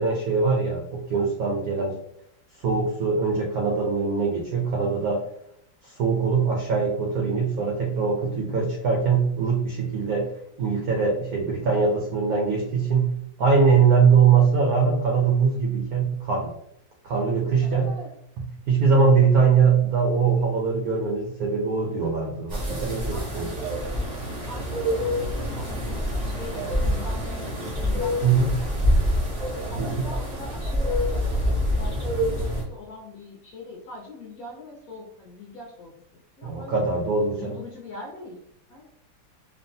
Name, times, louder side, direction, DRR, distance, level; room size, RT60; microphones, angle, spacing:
voice 1, 0.0-2.0 2.6-5.3 5.8-10.3 10.6-16.5 17.0-17.9 18.4-23.5 28.2-28.6 29.8-30.1 36.4-37.6, right 5 dB, 80° right, -1 dB, 0.8 m, -22 dB
voice 2, 17.6-18.1 23.1-23.9 24.5-29.1 29.7-35.9 36.4-36.8 37.3-38.4 38.7-38.9, left 2 dB, 65° left, -2 dB, 0.9 m, -42 dB
sound 1, 22.5-32.6, equal, 60° right, 0.4 m, -26 dB
3.1 x 2.1 x 2.6 m, 0.72 s
omnidirectional pair, 2.1 m